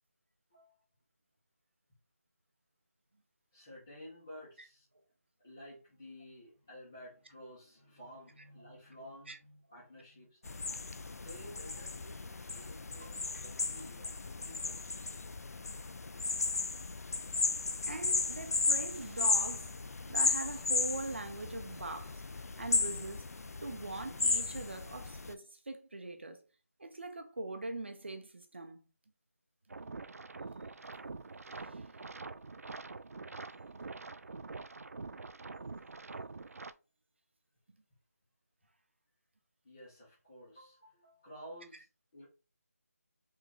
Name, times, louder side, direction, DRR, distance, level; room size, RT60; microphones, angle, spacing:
voice 1, 3.5-4.9 5.4-10.4 10.7-14.1 14.4-15.1 39.6-41.9 42.1-42.2, equal, 10° left, 0.6 m, -53 dB
sound 1, 10.4-25.3, left 3 dB, 80° left, 0.4 m, -35 dB
voice 2, 17.8-19.8 20.1-22.2 22.5-23.3 23.6-26.4 26.8-28.9 31.5-31.9, right 2 dB, 45° right, 0.7 m, -42 dB
sound 2, 29.7-36.7, right 3 dB, 70° right, 0.4 m, -45 dB
3.6 x 3.0 x 3.7 m
figure-of-eight pair, 180°, 8 cm